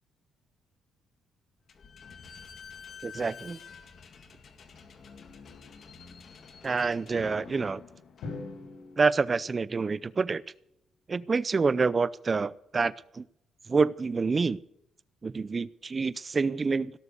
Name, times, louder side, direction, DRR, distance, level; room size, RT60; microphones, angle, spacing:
Slam / Squeak, 1.7-9.0, left 6 dB, 55° left, 2.0 m, -49 dB
voice 1, 3.0-3.6 6.6-7.8 9.0-10.4 11.1-13.2 13.7-14.6 15.2-16.9, right 4 dB, 35° right, 18 dB, 0.6 m, -27 dB
Drum, 8.2-10.4, left 3 dB, 85° left, 4.8 m, -43 dB
17.5 x 6.9 x 9.7 m, 0.77 s
cardioid pair, 90°, 0 cm